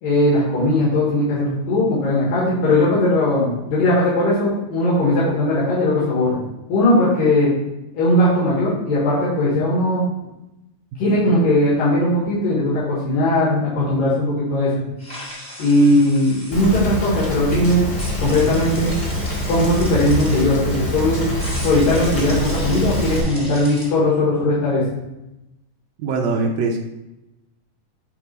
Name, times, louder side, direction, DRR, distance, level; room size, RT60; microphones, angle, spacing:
voice 1, 0.0-6.4 6.7-7.5 7.9-10.0 11.0-14.8 15.6-17.8 18.2-18.9 19.5-21.2 21.6-24.8, left 1 dB, 80° left, -7 dB, 3.4 m, -18 dB
sound 1, 15.0-16.6 18.0-20.4 21.4-23.9, equal, 20° left, 1.2 m, -36 dB
Rain, 16.5-23.2, left 1 dB, 40° left, 1.6 m, -25 dB
voice 2, 26.0-26.8, right 3 dB, 90° right, 0 dB, 1.5 m, -22 dB
8.4 x 3.4 x 4.5 m, 0.94 s
omnidirectional pair, 4.0 m